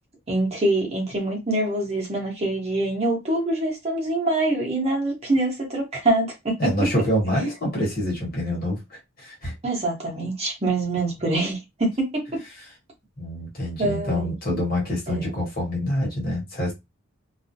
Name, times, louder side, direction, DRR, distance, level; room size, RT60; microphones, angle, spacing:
voice 1, 0.3-6.9 9.6-12.3 13.8-14.3 15.1-15.3, right 2 dB, 30° right, 0.8 m, -25 dB
voice 2, 6.6-9.5 13.2-16.7, equal, 45° left, 1.1 m, -26 dB
2.4 x 2.0 x 2.6 m
head